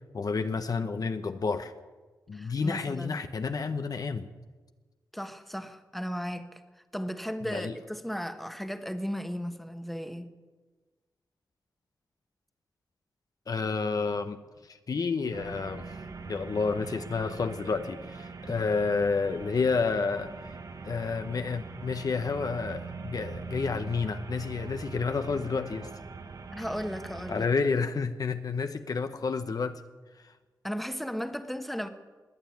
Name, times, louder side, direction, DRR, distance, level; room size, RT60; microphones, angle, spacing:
voice 1, 0.1-1.7 2.3-4.3 7.5-7.7 13.5-14.4 14.7-15.9 16.3-20.3 20.8-25.9 27.3-29.8, left 4 dB, 55° left, 0.9 m, -30 dB
voice 2, 2.3-3.2 5.1-10.3 26.5-27.5 30.6-31.9, equal, ahead, 1.3 m, -35 dB
sound 1, 15.3-27.4, right 4 dB, 55° right, 1.2 m, -42 dB
20.5 x 7.0 x 9.5 m
cardioid pair, 70°, 7 cm